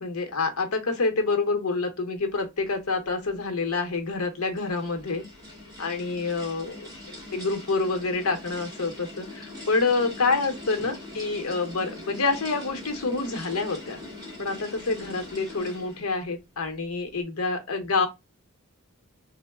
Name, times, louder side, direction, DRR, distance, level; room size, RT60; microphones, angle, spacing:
voice 1, 0.0-5.2 5.8-6.9 7.3-14.0 14.4-18.1, left 3 dB, 70° left, 0.8 m, -27 dB
sound 1, 4.0-16.2, left 2 dB, 20° right, 1.6 m, -42 dB
3.0 x 2.0 x 3.5 m
head